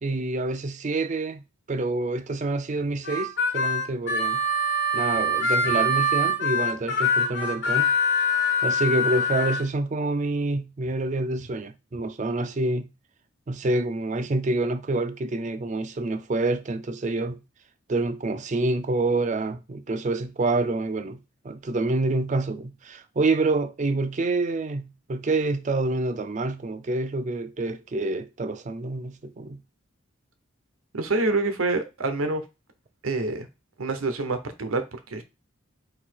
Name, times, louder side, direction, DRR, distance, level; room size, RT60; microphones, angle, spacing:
voice 1, 0.0-4.4 4.9-7.9 8.6-12.9 13.5-17.4 17.9-29.6, right 2 dB, 35° right, 0.4 m, -27 dB
Harmonica, 3.0-9.6, left 2 dB, 55° left, 1.4 m, -24 dB
voice 2, 30.9-32.4 33.0-33.5 33.8-35.2, right 3 dB, 75° right, 0.9 m, -26 dB
4.1 x 2.8 x 4.4 m
head